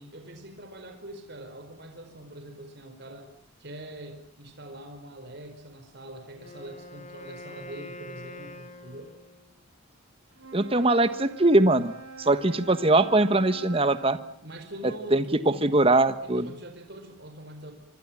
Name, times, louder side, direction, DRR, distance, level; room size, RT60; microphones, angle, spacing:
voice 1, 0.0-3.3 3.6-9.1 14.4-15.9 16.2-17.7, right 1 dB, 50° right, 5 dB, 4.9 m, -43 dB
Wind instrument woodwind instrument, 6.3-9.6, left 2 dB, 35° left, 3.2 m, -45 dB
Wind instrument woodwind instrument 2, 10.3-14.3, right 4 dB, 80° right, 3.8 m, -44 dB
voice 2, 10.5-11.9 12.2-14.2 15.1-15.2 15.6-16.5, right 2 dB, 25° right, 11 dB, 1.3 m, -21 dB
26.0 x 25.0 x 7.5 m, 0.64 s
head